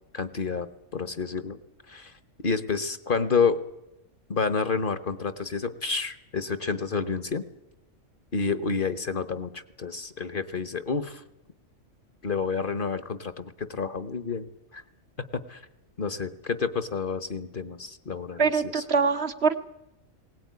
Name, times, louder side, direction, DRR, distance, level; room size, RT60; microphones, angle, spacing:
voice 1, 0.1-1.6 1.9-2.1 2.4-3.6 4.3-7.4 8.3-11.2 12.2-14.5 14.7-14.8 15.2-15.6 16.0-18.8, left 5 dB, 45° left, 13 dB, 1.3 m, -29 dB
voice 2, 18.4-19.6, right 5 dB, 55° right, 8 dB, 1.4 m, -24 dB
20.5 x 18.5 x 9.6 m, 0.87 s
omnidirectional pair, 1.3 m